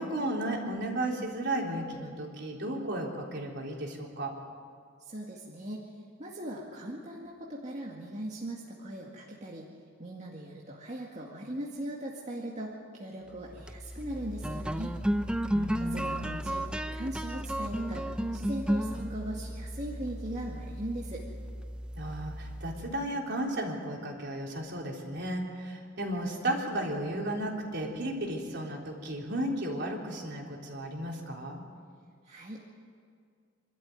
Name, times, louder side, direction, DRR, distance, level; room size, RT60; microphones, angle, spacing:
voice 1, 0.0-4.3 15.5-16.3 21.9-31.6, right 1 dB, 60° right, 0 dB, 3.7 m, -34 dB
voice 2, 5.1-5.9 6.2-9.7 10.0-15.0 15.8-21.2 32.3-32.7, right 1 dB, 35° right, -3 dB, 2.1 m, -39 dB
sound 1, 13.4-23.1, equal, 5° right, 0.6 m, -34 dB
27.0 x 13.0 x 9.3 m, 2.1 s
head